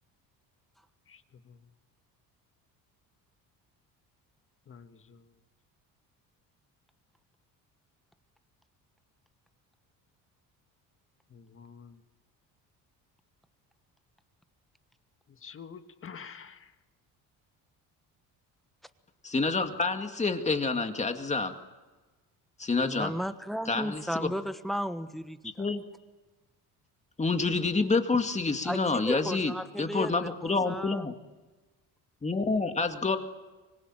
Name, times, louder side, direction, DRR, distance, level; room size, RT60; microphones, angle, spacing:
voice 1, 1.1-1.6 4.7-5.2 11.3-12.0 15.4-16.7, left 6 dB, 35° left, 8 dB, 1.7 m, -48 dB
voice 2, 19.2-21.5 22.6-23.1 23.7-24.3 25.6-25.8 27.2-29.5 29.8-31.1 32.2-33.2, left 3 dB, 20° left, 6 dB, 2.2 m, -28 dB
voice 3, 22.8-25.6 28.6-31.1, equal, ahead, 11 dB, 1.2 m, -35 dB
25.0 x 21.5 x 9.1 m, 1.2 s
cardioid pair, 115°, 35 cm